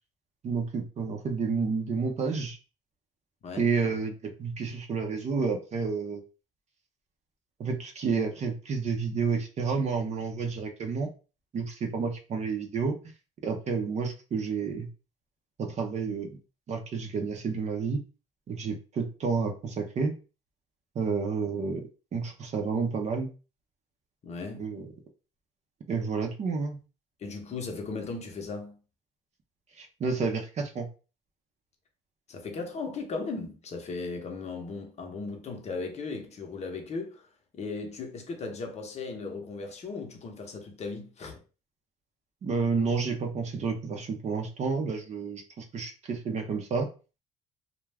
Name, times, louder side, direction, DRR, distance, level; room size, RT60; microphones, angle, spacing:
voice 1, 0.4-2.6 3.6-6.2 7.6-11.1 11.5-13.0 13.4-14.9 15.6-16.4 16.7-18.0 18.5-20.1 20.9-23.3 24.6-24.9 25.9-26.8 29.8-30.9 42.4-46.9, right 5 dB, 40° right, 0.6 m, -30 dB
voice 2, 3.4-3.7 24.2-24.6 27.2-28.8 32.3-37.3 37.5-41.4, left 4 dB, 40° left, 0.7 m, -37 dB
2.3 x 2.1 x 3.3 m
cardioid pair, 110°, 17 cm